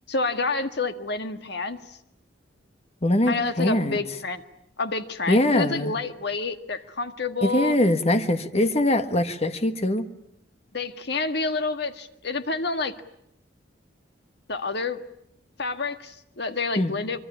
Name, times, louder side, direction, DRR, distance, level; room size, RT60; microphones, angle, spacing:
voice 1, 0.1-2.0 3.3-4.4 4.8-7.8 10.7-12.9 14.5-15.0 15.6-17.2, left 3 dB, 60° left, 9 dB, 1.8 m, -28 dB
voice 2, 3.0-4.0 5.3-5.9 7.4-10.1 16.8-16.9, left 1 dB, 35° left, 9 dB, 1.6 m, -22 dB
25.0 x 23.5 x 9.9 m, 0.75 s
head